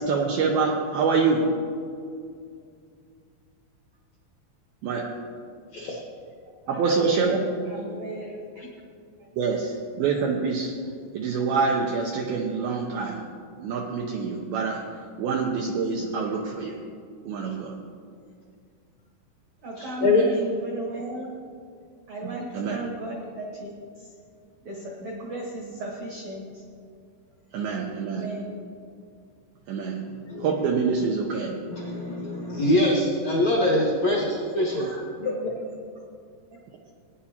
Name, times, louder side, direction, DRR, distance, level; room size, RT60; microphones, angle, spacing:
voice 1, 0.0-1.6 4.8-5.1 5.9-6.0 6.7-7.4 9.4-10.7 11.1-13.3 13.6-14.9 15.2-16.8 17.3-17.7 22.6-22.8 27.5-28.3 29.7-30.0 30.4-31.5, right 5 dB, 90° right, 0 dB, 2.2 m, -26 dB
voice 2, 6.6-8.7 9.4-9.5 14.8-14.9 19.6-21.3 22.1-24.1 24.6-26.6 28.0-28.6 34.6-35.7 36.5-36.6, right 2 dB, 65° right, -3 dB, 1.8 m, -36 dB
voice 3, 19.8-20.2 30.3-30.5 31.7-34.8, left 1 dB, 65° left, -5 dB, 1.7 m, -23 dB
18.5 x 9.6 x 2.9 m, 2.3 s
omnidirectional pair, 5.3 m